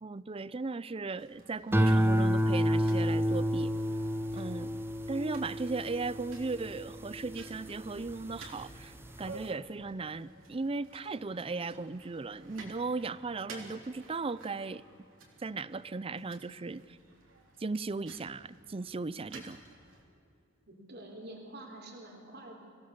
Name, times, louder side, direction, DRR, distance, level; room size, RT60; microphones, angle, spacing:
voice 1, 0.0-3.7 4.3-4.7 5.1-14.8 15.4-17.0 17.6-19.6, right 3 dB, 30° right, 18 dB, 0.5 m, -37 dB
sound 1, 1.2-20.0, right 2 dB, 75° right, 3.8 m, -54 dB
sound 2, 1.7-8.2 8.7-9.2, equal, 10° right, 0.9 m, -29 dB
voice 2, 20.7-22.6, right 1 dB, 55° right, 1 dB, 3.5 m, -47 dB
25.0 x 17.0 x 7.1 m, 2.5 s
head